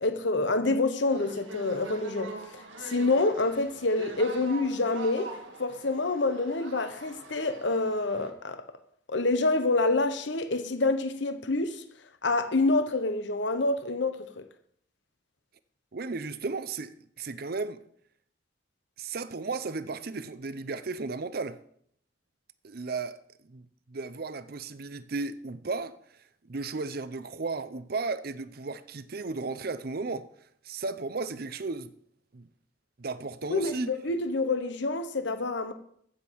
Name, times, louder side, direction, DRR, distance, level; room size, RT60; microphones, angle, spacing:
voice 1, 0.0-5.3 5.6-8.6 9.1-11.8 12.2-14.4 33.5-35.7, left 2 dB, 65° left, 0.9 m, -27 dB
sound 1, 1.1-8.3, right 3 dB, 80° right, 1.8 m, -43 dB
voice 2, 15.9-17.8 19.0-21.6 22.6-23.2 23.5-26.0 26.5-30.3 30.6-31.9 32.3-32.5 33.0-33.9, right 3 dB, 50° right, 0.6 m, -34 dB
15.5 x 7.4 x 4.6 m
head